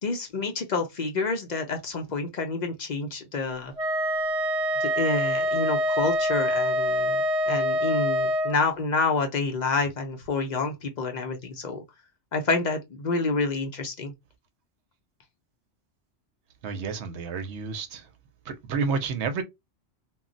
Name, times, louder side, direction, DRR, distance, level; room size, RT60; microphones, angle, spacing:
voice 1, 0.0-3.7 4.8-11.8 12.3-14.1, left 3 dB, 50° left, 0.5 m, -28 dB
Wind instrument woodwind instrument, 3.8-8.6, equal, 55° right, 0.4 m, -25 dB
voice 2, 16.6-18.1 18.4-19.4, right 5 dB, 75° right, 0.8 m, -30 dB
2.2 x 2.0 x 3.8 m
omnidirectional pair, 1.2 m